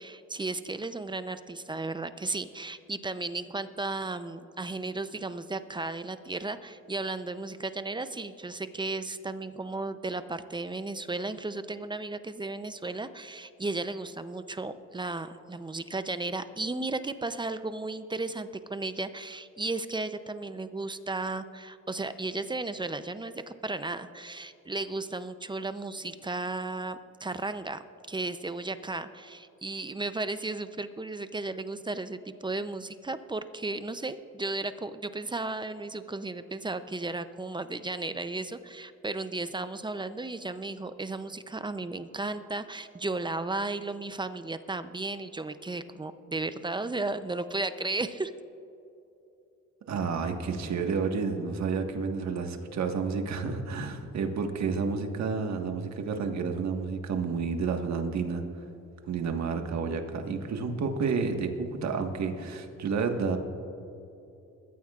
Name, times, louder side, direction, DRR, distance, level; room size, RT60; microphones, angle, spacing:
voice 1, 0.0-23.3 23.6-48.3, right 2 dB, 15° right, 11 dB, 0.5 m, -34 dB
voice 2, 49.9-58.4 59.1-63.4, right 5 dB, 65° right, 4 dB, 1.5 m, -30 dB
21.5 x 14.0 x 2.4 m, 2.8 s
cardioid pair, 90°, 30 cm